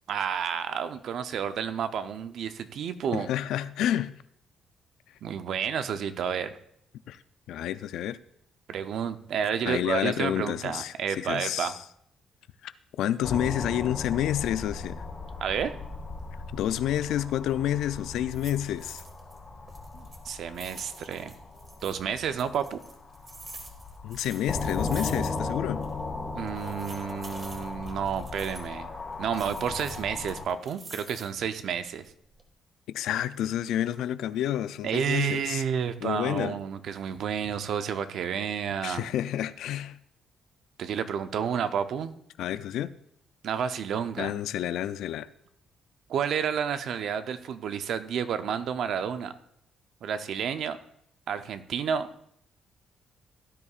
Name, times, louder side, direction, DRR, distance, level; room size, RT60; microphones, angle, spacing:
voice 1, 0.1-3.3 5.2-6.5 8.7-11.7 15.4-15.7 19.9-21.3 21.8-22.8 26.3-28.9 29.2-32.0 34.8-39.1 40.8-42.2 43.4-44.3 46.1-49.3 50.0-50.8 51.3-52.1, right 8 dB, 70° right, 0.6 m, -30 dB
voice 2, 3.1-4.1 7.1-7.2 7.5-8.2 9.7-11.8 12.6-12.7 13.0-15.1 16.5-19.0 24.0-25.8 32.9-35.6 36.0-36.6 38.8-40.0 42.4-42.9 44.2-45.3, left 11 dB, 85° left, 0.4 m, -29 dB
sound 1, 13.2-30.5, left 3 dB, 30° left, 1.8 m, -37 dB
sound 2, 17.6-17.9 18.3-19.4 19.7-22.0 22.4-25.6 25.8-25.9 26.5-28.7 29.3-31.4 31.9-32.5, right 2 dB, 35° right, 1.8 m, -47 dB
16.5 x 9.8 x 2.4 m
cardioid pair, 90°, 0 cm